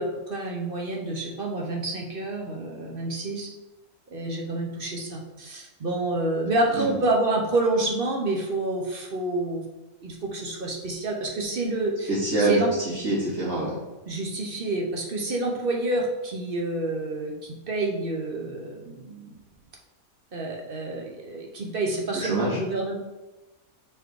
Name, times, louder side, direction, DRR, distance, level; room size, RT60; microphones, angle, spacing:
voice 1, 0.0-3.5 4.1-9.6 10.0-12.1 12.4-12.7 14.1-19.3 20.3-23.0, right 2 dB, 45° right, 0 dB, 0.9 m, -28 dB
voice 2, 12.1-13.8 22.1-22.6, right 2 dB, 70° right, -7 dB, 2.7 m, -25 dB
4.6 x 4.4 x 4.7 m, 1.1 s
omnidirectional pair, 1.5 m